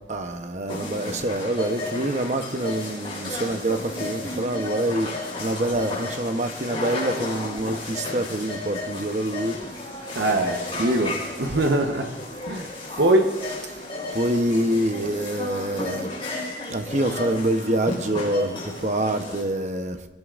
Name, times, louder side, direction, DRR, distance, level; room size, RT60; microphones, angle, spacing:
voice 1, 0.1-9.9 12.9-13.0 14.1-16.1 16.7-20.1, right 1 dB, 40° right, 0.9 m, -26 dB
sound 1, 0.7-19.4, left 2 dB, 25° left, 4.7 m, -33 dB
voice 2, 10.1-12.1 12.5-12.7 13.0-13.4, right 1 dB, 65° right, 1.0 m, -22 dB
22.5 x 17.5 x 2.6 m
head